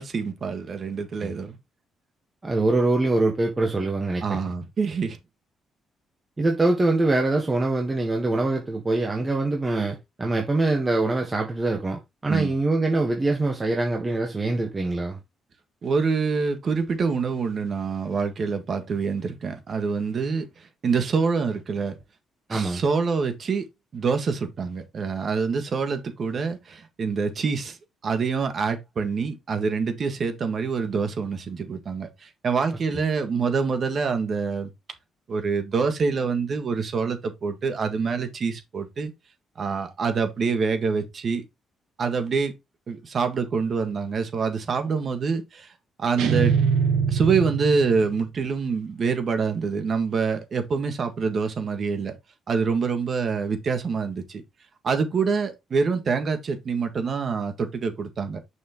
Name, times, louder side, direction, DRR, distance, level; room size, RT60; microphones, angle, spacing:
voice 1, 0.0-1.6 4.2-5.2 12.3-12.5 15.8-22.0 22.5-23.6 23.9-27.8 28.0-34.7 35.3-39.1 39.6-41.4 42.0-42.5 42.9-45.7 46.0-46.5 47.1-52.2 52.5-54.4 54.8-58.4, right 5 dB, 50° right, 1.6 m, -26 dB
voice 2, 2.4-4.4 6.4-15.2 22.5-22.8, right 2 dB, 25° right, 1.3 m, -24 dB
sound 1, 46.2-48.2, right 6 dB, 85° right, 1.2 m, -23 dB
6.4 x 5.8 x 3.0 m
cardioid pair, 90°, 0 cm